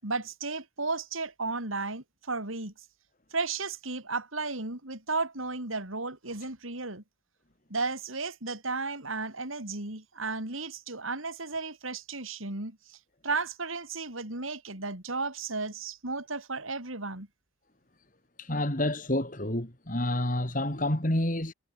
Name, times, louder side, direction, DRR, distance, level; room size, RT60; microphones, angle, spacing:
voice 1, 0.0-2.7 3.3-7.0 7.7-17.3, right 3 dB, 80° right, 5.4 m, -34 dB
voice 2, 18.4-21.5, left 1 dB, 40° left, 3.1 m, -29 dB
head